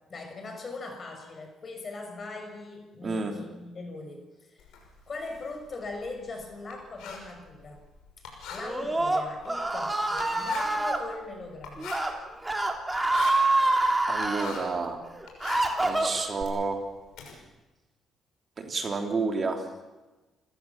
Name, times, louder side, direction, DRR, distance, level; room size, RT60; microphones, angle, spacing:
voice 1, 0.1-4.7 5.1-7.8 8.5-11.9, left 3 dB, 40° left, 5 dB, 6.3 m, -40 dB
Writing, 4.6-14.8 15.1-17.3, left 5 dB, 90° left, 6.0 m, -44 dB
Screaming, 8.6-11.0 11.8-12.1 12.4-14.5 15.0-16.4, right 2 dB, 15° right, 3.3 m, -26 dB
voice 2, 14.1-15.0 15.8-16.8 18.6-19.6, right 4 dB, 40° right, 4 dB, 3.3 m, -30 dB
29.5 x 15.5 x 7.4 m, 1.1 s
cardioid pair, 90°, 0 cm